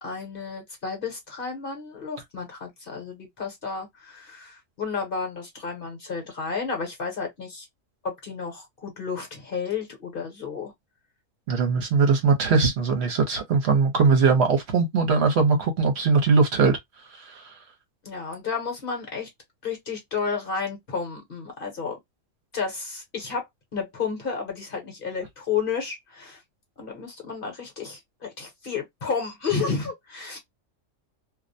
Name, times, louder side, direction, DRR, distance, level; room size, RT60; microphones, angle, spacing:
voice 1, 0.0-7.7 8.0-10.7 18.0-19.3 19.6-22.0 22.5-23.5 23.7-26.4 26.8-30.4, left 5 dB, 50° left, 0.9 m, -32 dB
voice 2, 11.5-16.8 17.2-17.4, right 4 dB, 60° right, 0.9 m, -20 dB
2.3 x 2.1 x 2.5 m
omnidirectional pair, 1.4 m